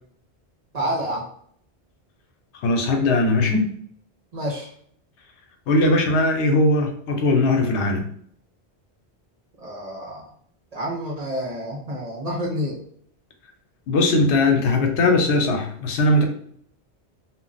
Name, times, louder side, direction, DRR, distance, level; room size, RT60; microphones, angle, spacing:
voice 1, 0.7-1.2 4.3-4.7 9.6-10.3 10.7-12.8, equal, 45° right, -1 dB, 0.6 m, -28 dB
voice 2, 2.6-3.7 5.7-8.1 13.9-16.2, left 2 dB, 90° left, 3 dB, 1.0 m, -19 dB
2.4 x 2.0 x 3.8 m, 0.62 s
omnidirectional pair, 1.1 m